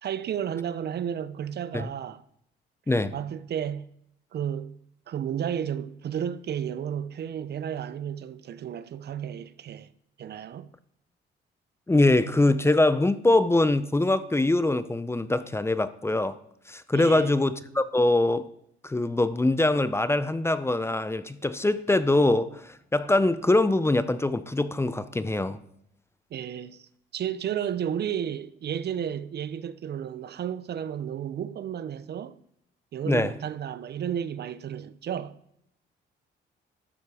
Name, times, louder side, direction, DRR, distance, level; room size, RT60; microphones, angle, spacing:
voice 1, 0.0-2.2 3.1-3.9 4.3-4.8 5.1-9.9 10.2-10.7 16.9-17.4 26.3-32.4 32.9-35.4, right 9 dB, 55° right, 0.6 m, -32 dB
voice 2, 11.9-16.4 16.7-18.5 18.8-25.6 33.1-33.3, left 2 dB, 15° left, 0.6 m, -23 dB
12.5 x 7.2 x 4.9 m
cardioid pair, 90°, 20 cm